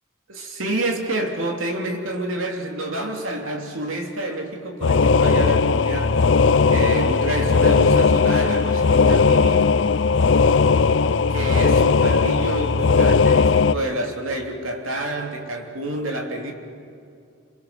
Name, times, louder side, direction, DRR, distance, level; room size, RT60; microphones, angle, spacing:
voice 1, 0.3-6.2 6.6-9.7 11.3-16.5, right 1 dB, 85° right, 3 dB, 3.2 m, -28 dB
sound 1, 4.8-13.7, left 4 dB, 70° left, 0.5 m, -17 dB
sound 2, 6.0-14.7, equal, 25° left, 4.0 m, -44 dB
28.0 x 28.0 x 6.1 m, 2.4 s
head